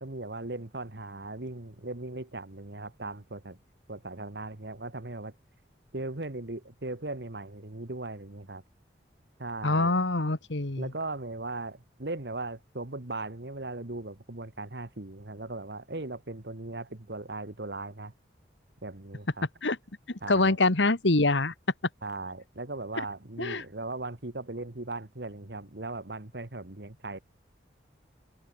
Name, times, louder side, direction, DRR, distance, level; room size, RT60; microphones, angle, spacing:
voice 1, 0.0-3.6 3.9-5.3 5.9-8.6 9.4-10.0 10.8-18.1 18.8-19.5 20.2-20.6 22.0-27.2, right 2 dB, 65° right, 1.7 m, -38 dB
voice 2, 9.6-10.9 19.6-19.8 20.1-21.5 23.4-23.6, left 2 dB, 85° left, 1.9 m, -25 dB
head